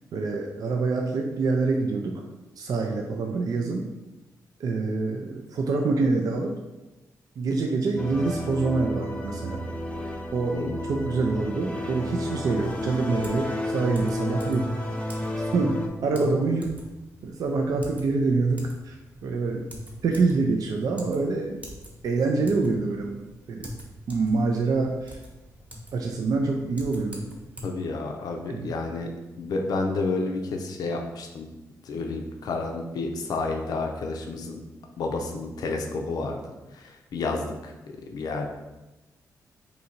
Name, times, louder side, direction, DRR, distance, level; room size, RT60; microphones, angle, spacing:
voice 1, 0.1-2.2 2.6-3.8 4.6-6.5 7.4-9.6 10.3-10.6 10.8-14.7 15.3-15.8 16.0-16.8 17.2-19.6 20.0-21.6 22.0-23.2 23.5-23.7 24.1-25.2 25.9-27.3 28.5-28.8, right 3 dB, 70° right, 2 dB, 0.4 m, -26 dB
sound 1, 8.0-15.9, left 1 dB, 20° left, 0.4 m, -32 dB
Typing, 12.5-27.6, equal, 20° right, 0.9 m, -44 dB
voice 2, 27.6-29.1 29.4-31.5 31.9-34.6 35.0-36.4 36.7-37.7 38.1-38.5, left 3 dB, 75° left, 2 dB, 0.5 m, -30 dB
2.7 x 2.7 x 4.3 m, 1.0 s
cardioid pair, 85°, 7 cm